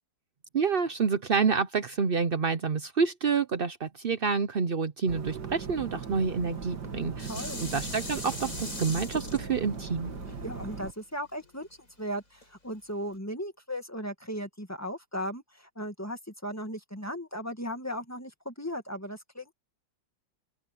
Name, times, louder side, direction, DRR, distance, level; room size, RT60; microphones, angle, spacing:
voice 1, 0.5-10.1, right 5 dB, 85° right, 0.5 m, -28 dB
sound 1, 5.1-10.9, right 5 dB, 55° right, 2.9 m, -39 dB
Dishes pots and pans, 6.6-11.9 12.4-12.5, left 2 dB, 40° left, 6.1 m, -41 dB
voice 2, 7.3-7.7 10.4-11.7 12.0-19.5, equal, 10° left, 1.9 m, -37 dB
open air
omnidirectional pair, 2.1 m